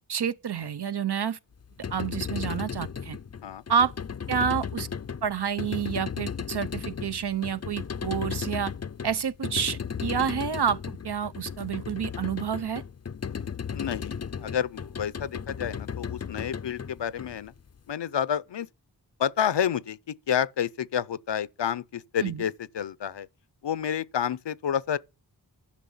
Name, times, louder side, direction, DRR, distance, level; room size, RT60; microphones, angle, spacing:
voice 1, 0.1-1.4 1.9-3.2 3.7-3.9 4.3-4.9 5.2-8.7 9.0-12.8 22.2-22.4, right 7 dB, 65° right, 0.8 m, -29 dB
sound 1, 1.6-17.8, left 7 dB, 40° left, 0.5 m, -35 dB
voice 2, 13.7-17.5 17.9-18.7 19.2-23.3 23.6-25.0, left 8 dB, 80° left, 0.6 m, -29 dB
11.5 x 6.2 x 7.2 m
wide cardioid pair, 55°, 42 cm